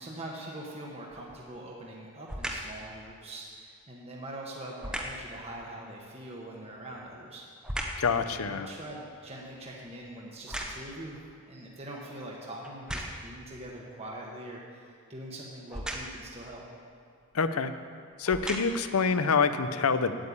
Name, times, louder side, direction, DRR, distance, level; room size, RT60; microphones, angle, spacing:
voice 1, 0.0-7.7 8.2-16.6, right 1 dB, 25° right, -3 dB, 1.2 m, -43 dB
sound 1, 1.2-1.5 2.2-2.8 4.8-5.3 6.7-8.1 8.6-11.1 11.8-11.9 12.6-13.4 15.7-16.3 17.3-17.4 18.1-18.9 19.6-19.7, equal, 5° right, 0.8 m, -38 dB
voice 2, 8.0-8.7 17.3-17.7 18.2-20.2, left 5 dB, 80° left, 11 dB, 0.6 m, -26 dB
9.0 x 8.6 x 8.4 m, 2.2 s
head